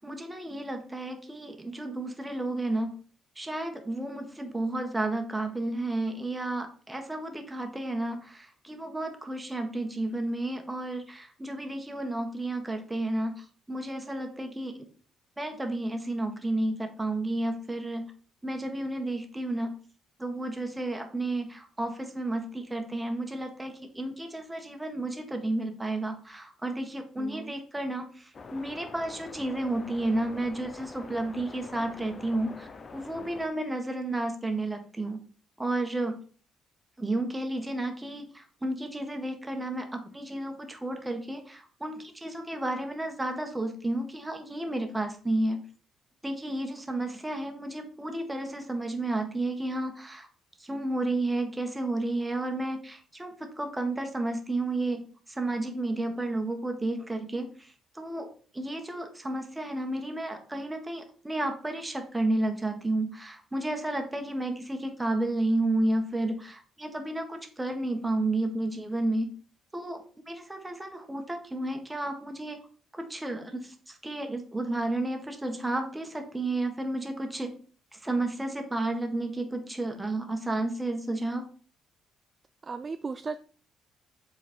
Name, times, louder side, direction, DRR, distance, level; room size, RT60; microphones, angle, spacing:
voice 1, 0.0-3.0 3.4-14.8 15.4-18.1 18.4-19.7 20.2-35.2 35.6-36.2 37.0-45.6 46.2-50.3 50.6-69.3 69.7-72.6 72.9-77.5 77.9-81.5, right 2 dB, 15° right, 5 dB, 1.5 m, -32 dB
voice 2, 27.2-27.5 82.6-83.4, right 4 dB, 35° right, 11 dB, 0.4 m, -36 dB
sound 1, 28.3-33.5, left 4 dB, 40° left, 0.7 m, -45 dB
7.3 x 4.2 x 4.4 m, 0.42 s
cardioid pair, 90°, 0 cm